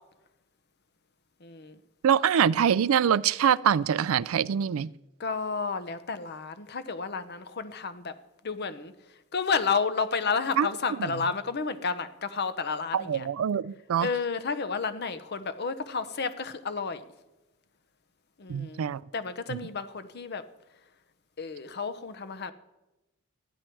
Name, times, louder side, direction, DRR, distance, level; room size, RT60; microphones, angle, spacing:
voice 1, 1.4-1.8 5.2-8.1 8.4-8.9 9.3-13.3 14.0-17.0 18.4-18.8 19.1-20.4 21.4-22.5, left 5 dB, 50° left, 0.8 m, -31 dB
voice 2, 2.0-4.9 10.6-10.7 11.0-11.1 12.9-14.1 18.5-19.0 19.5-19.6, right 8 dB, 75° right, 0.4 m, -24 dB
14.5 x 10.0 x 4.5 m
head